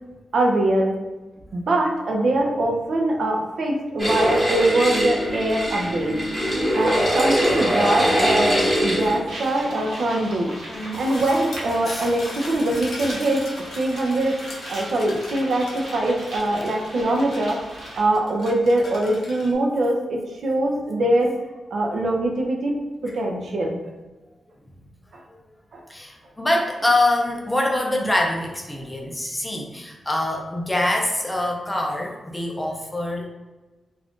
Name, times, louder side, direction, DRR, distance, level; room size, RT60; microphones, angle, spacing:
voice 1, 0.3-1.0 1.5-6.2 6.7-10.5 11.0-13.5 13.7-14.4 14.7-21.3 21.7-22.8 23.1-23.8 25.1-25.2 25.7-25.8, right 1 dB, 65° right, 0 dB, 0.5 m, -23 dB
sound 1, 4.0-9.2, equal, 15° right, 1.0 m, -21 dB
sound 2, 9.3-18.0, right 1 dB, 85° right, 1.1 m, -37 dB
voice 2, 10.7-11.0 11.9-12.1 24.7-24.8 25.9-33.3, left 1 dB, 10° left, 0 dB, 0.4 m, -24 dB
sound 3, 10.9-19.5, left 2 dB, 75° left, 0.7 m, -40 dB
2.5 x 2.4 x 3.5 m, 1.2 s
wide cardioid pair, 145°, 0 cm